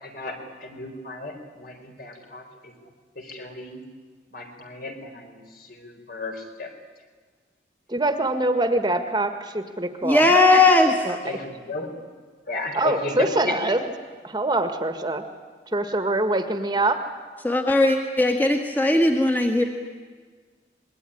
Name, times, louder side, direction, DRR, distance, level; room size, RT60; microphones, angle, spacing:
voice 1, 0.0-2.4 3.2-3.8 4.3-6.7 11.2-12.0 12.5-13.6, left 2 dB, 55° left, 4 dB, 4.2 m, -34 dB
voice 2, 7.9-10.2 11.0-11.2 12.7-13.8 14.2-15.2 15.7-17.0, right 2 dB, 25° right, 7 dB, 1.5 m, -24 dB
voice 3, 10.0-11.2 17.4-19.6, left 2 dB, 10° left, 3 dB, 1.7 m, -18 dB
26.0 x 21.0 x 10.0 m, 1.5 s
head